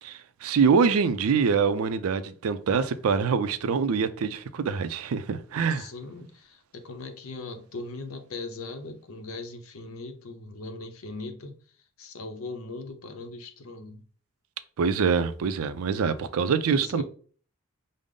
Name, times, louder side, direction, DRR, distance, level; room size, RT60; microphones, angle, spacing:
voice 1, 0.0-5.9 14.8-17.0, right 5 dB, 80° right, 0.4 m, -25 dB
voice 2, 5.7-11.5 12.0-14.0 16.7-17.0, left 3 dB, 80° left, 0.7 m, -39 dB
5.1 x 2.0 x 3.6 m
head